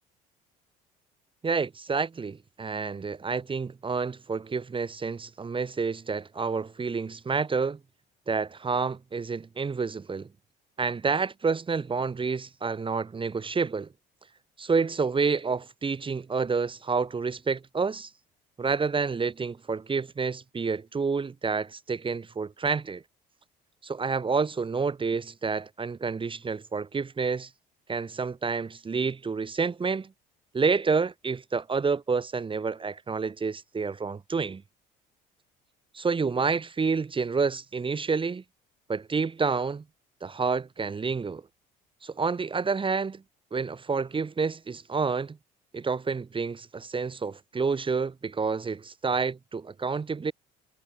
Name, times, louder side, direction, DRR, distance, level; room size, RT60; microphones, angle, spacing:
voice 1, 1.4-7.8 8.3-10.3 10.8-13.9 14.6-18.1 18.6-23.0 23.8-27.5 27.9-30.1 30.5-34.6 35.9-38.4 38.9-39.8 40.2-41.4 42.0-43.2 43.5-45.4 45.7-50.3, right 5 dB, 25° right, 1.4 m, -29 dB
supercardioid pair, 75°, 20 cm